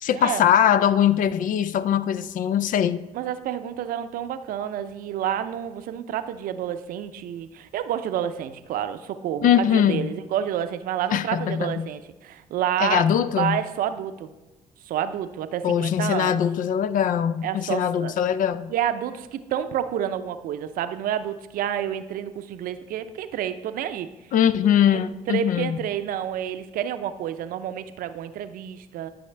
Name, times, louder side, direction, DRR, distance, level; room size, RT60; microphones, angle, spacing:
voice 1, 0.0-3.0 9.4-10.1 11.1-11.9 12.8-13.6 15.6-18.7 24.3-25.8, left 9 dB, 65° left, 15 dB, 0.5 m, -21 dB
voice 2, 3.1-13.0 13.4-14.3 14.9-16.4 17.4-18.1 18.7-24.1 24.9-25.0 25.3-29.1, right 10 dB, 70° right, 11 dB, 0.6 m, -29 dB
11.5 x 5.6 x 3.3 m, 1.1 s
supercardioid pair, 60°, 15 cm